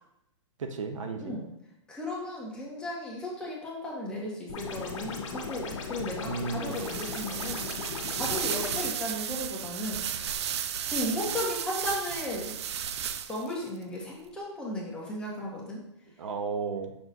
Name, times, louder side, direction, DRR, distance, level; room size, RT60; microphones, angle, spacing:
voice 1, 0.6-1.4 6.2-6.8 16.2-16.9, right 4 dB, 85° right, 6 dB, 0.8 m, -33 dB
voice 2, 1.9-7.6 8.1-10.0 10.9-12.5 13.3-15.8, left 1 dB, 5° left, -5 dB, 1.5 m, -35 dB
sound 1, 4.5-8.9, left 4 dB, 80° left, 1.7 m, -37 dB
sound 2, 6.7-13.5, right 9 dB, 60° right, 0.4 m, -34 dB
6.1 x 5.9 x 2.7 m, 0.84 s
hypercardioid pair, 150°, 16 cm